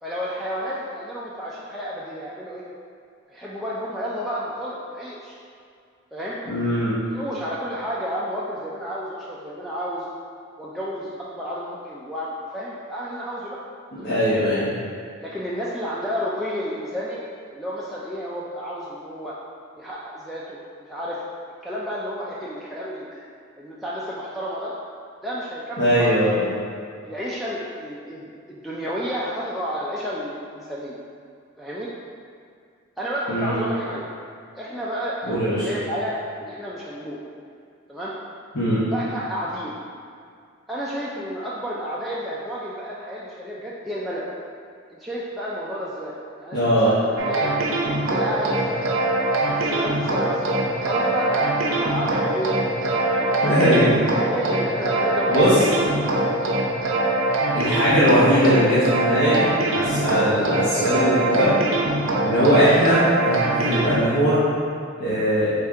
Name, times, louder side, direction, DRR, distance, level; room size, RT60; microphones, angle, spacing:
voice 1, 0.0-2.6 3.3-5.4 6.1-6.4 7.1-10.1 10.6-13.6 14.0-14.3 15.2-17.2 17.5-19.4 19.8-21.2 21.6-23.2 23.6-24.7 25.2-26.2 27.0-31.0 31.6-31.9 33.0-34.0 34.6-37.2 37.9-38.1 38.9-39.7 40.7-44.3 44.9-46.1 46.4-47.5 48.0-48.9 49.4-52.5 52.8-53.5 54.2-56.3, equal, ahead, -8 dB, 0.4 m, -31 dB
voice 2, 6.4-6.9 14.0-14.7 25.8-26.4 33.3-33.5 35.2-35.7 38.5-38.8 46.5-46.9 53.4-53.9 55.3-55.6 57.5-59.4 59.7-61.5 62.2-64.4 65.0-65.5, equal, 60° left, -13 dB, 1.1 m, -20 dB
sound 1, 47.2-64.0, right 2 dB, 70° right, 0.6 m, -23 dB
4.3 x 3.3 x 3.6 m, 2.3 s
head